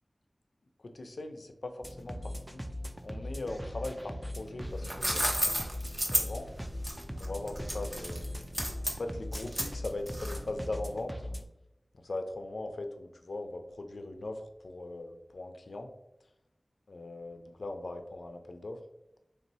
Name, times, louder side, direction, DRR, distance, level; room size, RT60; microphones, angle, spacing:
voice 1, 0.8-2.6 3.0-5.4 6.1-6.5 7.2-8.3 9.0-11.1 11.9-15.9 16.9-18.8, left 2 dB, 85° left, 6 dB, 0.4 m, -40 dB
sound 1, 1.8-11.4, equal, 5° right, 0.4 m, -40 dB
sound 2, 4.6-10.6, equal, 25° right, 0.9 m, -33 dB
3.4 x 2.7 x 4.1 m, 0.86 s
wide cardioid pair, 40°, 0 cm